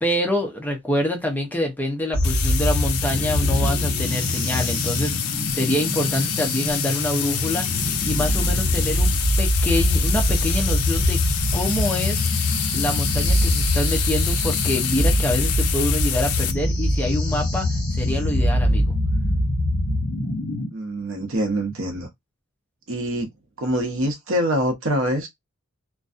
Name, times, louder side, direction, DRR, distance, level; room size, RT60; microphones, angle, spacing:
voice 1, 0.0-11.2 11.5-12.3 12.7-17.7 17.9-18.8, left 1 dB, 10° left, 0.5 m, -26 dB
sound 1, 2.1-20.7, left 1 dB, 55° left, 1.2 m, -23 dB
sound 2, 2.2-16.5, left 9 dB, 75° left, 0.4 m, -28 dB
voice 2, 20.7-22.1 22.9-23.3 23.6-25.3, equal, 60° right, 0.8 m, -24 dB
2.5 x 2.2 x 2.4 m
head